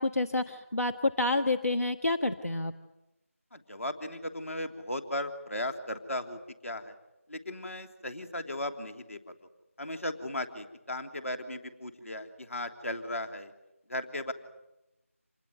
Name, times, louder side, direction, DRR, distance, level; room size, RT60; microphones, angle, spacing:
voice 1, 0.0-2.7, left 2 dB, 90° left, 5 dB, 1.4 m, -28 dB
voice 2, 3.5-6.9 7.3-9.3 9.8-13.5 13.9-14.3, left 1 dB, 65° left, 5 dB, 3.2 m, -36 dB
27.0 x 20.0 x 9.4 m, 0.94 s
figure-of-eight pair, 170°, 8 cm